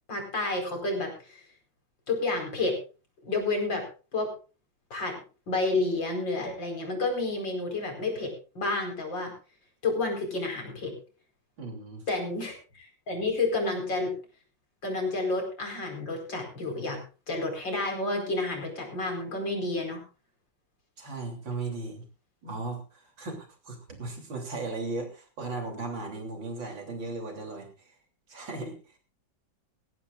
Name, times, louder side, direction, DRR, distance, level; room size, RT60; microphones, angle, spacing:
voice 1, 0.1-1.4 2.1-2.7 3.2-3.8 4.1-4.3 4.9-5.1 5.5-9.3 9.8-10.9 12.1-14.1 14.8-17.0 17.3-20.0, left 2 dB, 75° left, 2 dB, 5.4 m, -30 dB
voice 2, 11.6-12.0 21.0-22.1 22.4-27.9 28.3-29.0, right 3 dB, 90° right, 2 dB, 4.0 m, -37 dB
19.5 x 15.0 x 2.5 m, 0.34 s
omnidirectional pair, 2.0 m